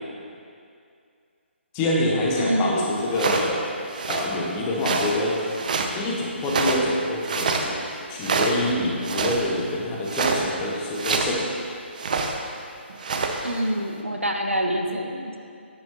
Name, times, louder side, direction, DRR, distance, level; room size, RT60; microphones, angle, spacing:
voice 1, 1.7-3.6 4.1-5.5 5.9-7.8 8.1-11.5, left 1 dB, 20° left, -3 dB, 1.2 m, -26 dB
voice 2, 2.4-3.0 13.4-15.4, equal, 85° right, 3 dB, 1.0 m, -26 dB
sound 1, 3.1-3.5 3.9-4.3 4.8-6.0 6.4-6.9 7.2-7.7 8.2-8.7 9.0-9.5 10.1-10.5 10.9-11.4 12.0-12.4 12.9-13.6, right 4 dB, 40° right, 0.7 m, -26 dB
10.0 x 9.9 x 3.0 m, 2.4 s
figure-of-eight pair, 140°, 7 cm